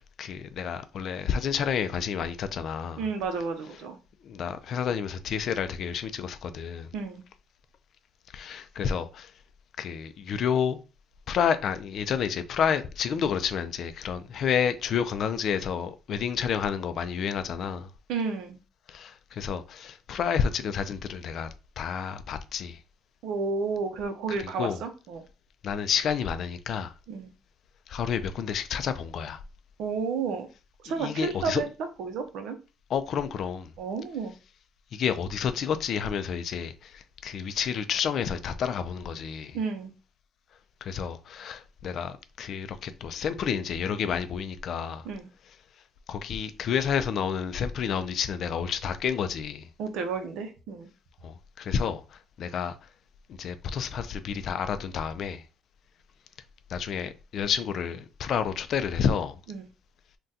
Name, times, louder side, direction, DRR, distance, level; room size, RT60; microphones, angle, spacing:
voice 1, 0.2-3.0 4.2-6.9 8.3-9.3 9.8-10.8 11.3-17.9 18.9-21.5 21.8-22.8 24.6-24.8 25.6-26.9 27.9-29.4 31.0-31.6 32.9-33.7 34.9-39.6 40.8-45.1 46.1-49.7 51.2-52.7 53.3-55.4 56.7-59.4, left 7 dB, 55° left, 0.3 m, -30 dB
voice 2, 3.0-4.0 6.9-7.2 18.1-18.6 23.2-25.2 27.1-27.3 29.8-30.5 30.8-32.6 33.8-34.3 39.5-39.9 45.0-45.3 49.8-50.9 59.5-59.7, right 4 dB, 80° right, 0.6 m, -31 dB
3.6 x 2.2 x 2.6 m
cardioid pair, 120°, 0 cm